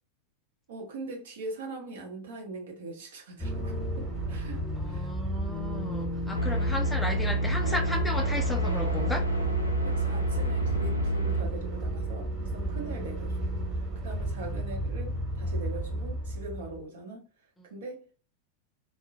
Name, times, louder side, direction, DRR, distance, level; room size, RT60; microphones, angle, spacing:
voice 1, 0.7-5.1 9.8-13.4 14.0-17.3 17.7-18.1, right 2 dB, 60° right, 0.9 m, -41 dB
sound 1, 3.4-16.8, right 1 dB, 15° right, 1.2 m, -33 dB
voice 2, 4.8-9.2, left 1 dB, 5° left, 0.4 m, -34 dB
sound 2, 6.3-11.4, right 1 dB, 80° left, 0.4 m, -28 dB
2.3 x 2.0 x 2.5 m
figure-of-eight pair, 90°, 0 cm